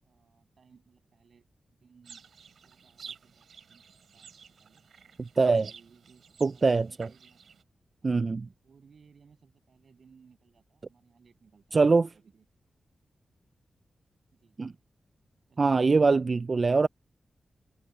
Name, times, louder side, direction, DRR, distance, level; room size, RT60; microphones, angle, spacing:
voice 1, 0.0-2.2 2.6-3.9 4.1-4.8 5.3-7.5 8.0-8.2 8.6-12.5 14.3-14.6 15.5-16.3, right 6 dB, 65° right, 7.7 m, -61 dB
sound 1, 2.0-7.6, right 6 dB, 85° right, 4.2 m, -51 dB
voice 2, 5.2-5.7 6.4-6.9 8.0-8.5 11.7-12.1 14.6-14.7 15.6-16.9, right 4 dB, 40° right, 0.3 m, -23 dB
wide cardioid pair, 100°, 0 cm